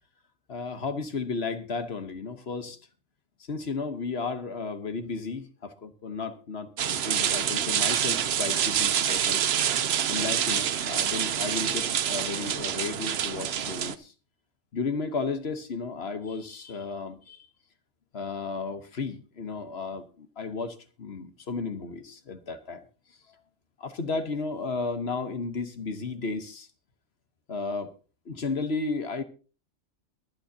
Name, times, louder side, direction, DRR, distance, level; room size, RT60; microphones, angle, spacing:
voice 1, 0.5-2.8 3.4-9.4 10.1-14.1 14.7-17.4 18.1-22.8 23.8-26.7 27.5-27.9 28.3-29.2, left 4 dB, 55° left, 1.4 m, -33 dB
sound 1, 6.8-14.0, right 9 dB, 60° right, 0.9 m, -27 dB
22.5 x 9.2 x 2.8 m
omnidirectional pair, 1.3 m